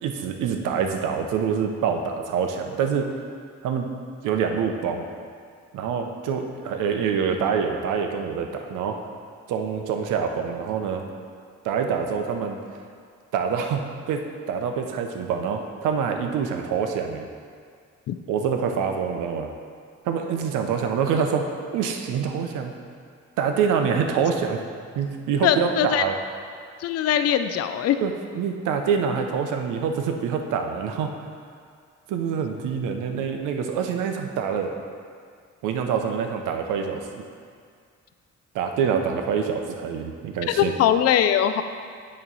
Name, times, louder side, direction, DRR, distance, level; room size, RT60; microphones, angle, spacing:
voice 1, 0.0-3.1 3.6-3.9 4.2-5.1 5.7-9.0 9.5-11.0 11.6-12.6 13.3-17.3 18.3-19.5 20.0-21.5 21.7-22.7 23.4-24.6 24.9-26.2 28.0-31.1 32.1-34.7 35.6-37.2 38.5-40.7, right 6 dB, 90° right, 4 dB, 0.7 m, -26 dB
voice 2, 25.4-26.0 26.8-28.0 40.5-41.6, left 10 dB, 55° left, 10 dB, 0.4 m, -21 dB
8.7 x 3.1 x 5.4 m, 2.1 s
cardioid pair, 90°, 30 cm